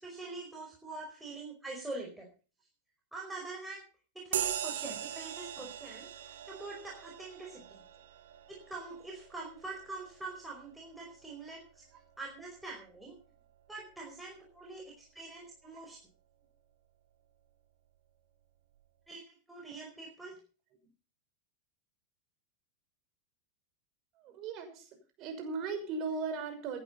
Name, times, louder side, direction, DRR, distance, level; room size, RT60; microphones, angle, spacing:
voice 1, 0.0-2.3 3.1-3.8 4.1-7.8 8.5-11.8 12.2-13.2 13.7-16.0 19.1-19.2 19.5-20.4, right 3 dB, 5° right, -1 dB, 5.0 m, -44 dB
sound 1, 4.3-12.2, right 10 dB, 70° right, 2.0 m, -41 dB
voice 2, 24.2-24.9 25.2-26.8, right 4 dB, 45° right, 6 dB, 5.8 m, -37 dB
17.0 x 10.5 x 5.6 m, 0.36 s
hypercardioid pair, 90°, 0 cm